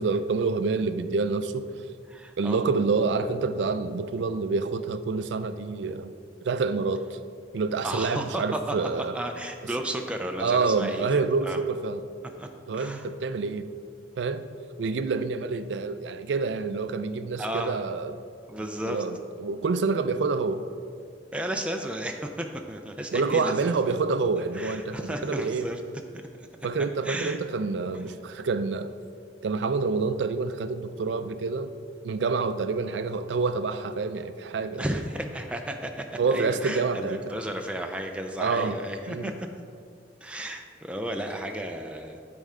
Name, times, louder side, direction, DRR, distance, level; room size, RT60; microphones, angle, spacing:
voice 1, 0.0-1.7 2.4-6.1 6.4-7.2 7.5-9.1 10.4-12.0 12.7-13.7 14.2-14.4 14.8-18.2 18.9-20.6 23.1-25.7 26.6-28.9 29.4-31.7 32.0-35.0 36.2-37.3 38.4-38.8 39.1-39.3, right 4 dB, 80° right, 11 dB, 0.4 m, -27 dB
voice 2, 2.1-2.6 7.8-8.6 9.1-11.0 11.4-11.6 12.4-12.5 12.8-13.0 17.4-17.8 18.5-19.0 21.3-23.7 24.5-25.8 26.1-26.3 27.0-27.4 34.8-36.1 36.3-39.3 40.2-42.2, right 1 dB, 5° right, 3 dB, 0.4 m, -33 dB
12.5 x 4.3 x 3.7 m, 2.2 s
head